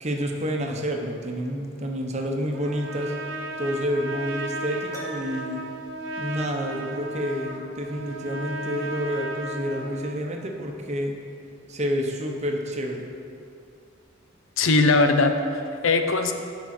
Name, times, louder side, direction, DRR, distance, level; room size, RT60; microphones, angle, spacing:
voice 1, 0.0-3.1 3.6-5.6 6.2-11.1 11.7-13.1, equal, 35° right, 2 dB, 0.9 m, -29 dB
Trumpet, 2.5-10.2, right 1 dB, 70° right, 0.7 m, -35 dB
Piano, 4.9-5.8, right 1 dB, 15° left, 1.1 m, -42 dB
voice 2, 14.6-16.3, left 3 dB, 85° left, 6 dB, 0.7 m, -20 dB
10.0 x 5.3 x 6.0 m, 2.6 s
head